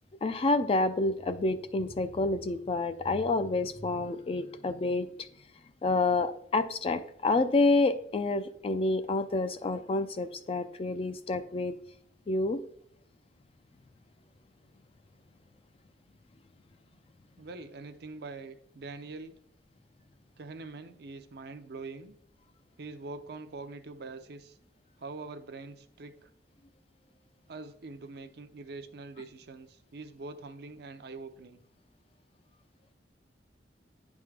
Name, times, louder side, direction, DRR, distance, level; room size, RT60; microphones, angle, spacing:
voice 1, 0.2-5.3 5.8-11.7 12.3-12.6, left 2 dB, 35° left, 10 dB, 0.4 m, -28 dB
voice 2, 17.4-19.3 20.4-22.1 22.8-24.6 25.0-26.3 27.5-31.6, right 3 dB, 65° right, 9 dB, 0.6 m, -44 dB
9.9 x 3.6 x 3.3 m, 0.68 s
head